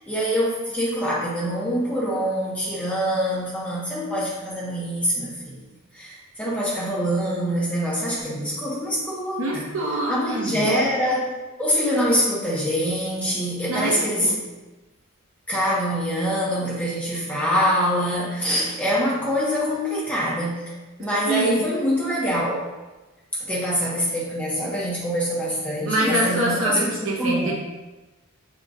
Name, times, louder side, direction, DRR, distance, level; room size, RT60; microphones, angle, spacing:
voice 1, 0.0-5.6 5.9-9.7 10.1-11.3 11.6-14.3 15.5-20.6 21.0-22.6 23.4-26.9 27.2-27.5, equal, 5° left, -7 dB, 1.0 m, -24 dB
voice 2, 9.4-10.7 13.7-14.3 21.3-21.6 25.9-27.5, right 1 dB, 65° right, -3 dB, 0.9 m, -25 dB
5.7 x 3.7 x 2.3 m, 1.1 s
head